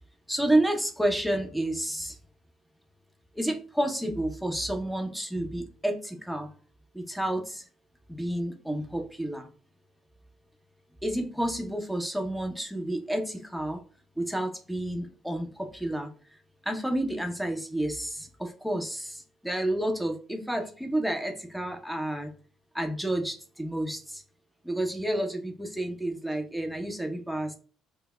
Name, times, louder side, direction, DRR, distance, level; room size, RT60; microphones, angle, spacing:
voice 1, 0.3-2.2 3.3-6.5 6.9-7.6 8.1-9.5 11.0-13.8 14.2-22.3 22.7-24.2 24.6-27.5, right 1 dB, ahead, 3 dB, 0.7 m, -30 dB
5.1 x 2.0 x 2.2 m, 0.39 s
hypercardioid pair, 50°, 0 cm